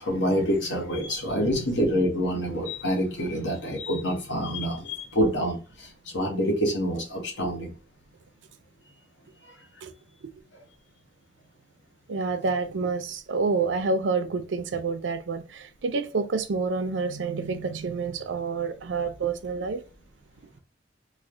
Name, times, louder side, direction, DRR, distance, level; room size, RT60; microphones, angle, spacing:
voice 1, 0.0-7.7, equal, 75° left, 1.1 m, -27 dB
voice 2, 12.1-19.8, right 4 dB, 80° right, 0.5 m, -28 dB
3.1 x 2.1 x 3.6 m
head